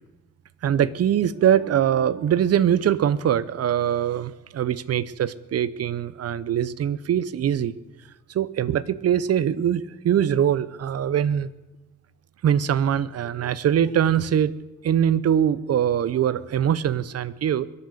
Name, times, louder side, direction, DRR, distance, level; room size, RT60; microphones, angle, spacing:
voice 1, 0.6-7.7 8.3-11.5 12.4-14.5 14.8-17.7, right 9 dB, 55° right, 18 dB, 0.8 m, -22 dB
23.0 x 8.5 x 6.7 m, 1.1 s
cardioid pair, 90°, 30 cm